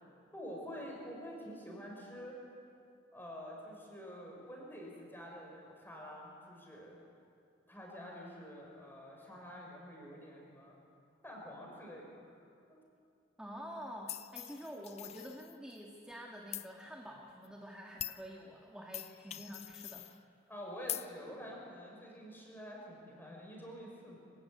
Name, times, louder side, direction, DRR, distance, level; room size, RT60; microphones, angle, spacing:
voice 1, 0.3-2.4 3.1-7.0 7.7-10.7 11.2-12.3 12.7-12.8 20.5-24.2, equal, 10° left, -2 dB, 6.3 m, -48 dB
voice 2, 13.4-20.1, equal, 5° right, -1 dB, 1.7 m, -48 dB
sound 1, 14.1-15.8 16.5-16.7 17.4-17.5 18.0-18.2 18.9-20.2 20.9-21.1, left 12 dB, 35° left, 0.5 m, -43 dB
26.0 x 16.0 x 9.7 m, 2.4 s
head